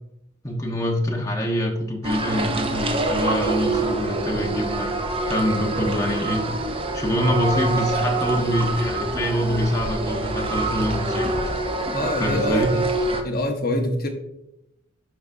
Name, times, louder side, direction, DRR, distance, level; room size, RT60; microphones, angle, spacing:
voice 1, 0.4-4.9 5.3-6.4 6.9-11.3 12.2-12.7, equal, 15° left, -1 dB, 1.0 m, -25 dB
sound 1, 2.0-13.2, right 2 dB, 25° right, 0.5 m, -26 dB
voice 2, 11.9-12.8 13.2-14.1, left 1 dB, 45° left, 3 dB, 1.0 m, -25 dB
11.5 x 3.9 x 2.7 m, 0.85 s
head